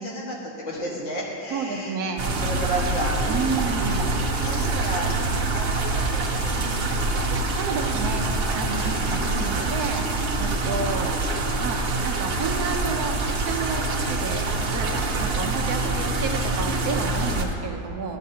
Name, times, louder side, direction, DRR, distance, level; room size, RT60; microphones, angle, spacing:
voice 1, 0.0-4.0 4.3-7.3 8.8-9.4, right 1 dB, 75° left, -5 dB, 2.5 m, -33 dB
voice 2, 1.5-2.2 3.3-4.1 7.6-11.2 11.5-18.2, right 4 dB, 65° right, 2 dB, 1.2 m, -31 dB
sound 1, 2.2-17.4, right 2 dB, 45° right, 0.9 m, -25 dB
13.5 x 9.2 x 2.8 m, 2.7 s
omnidirectional pair, 2.0 m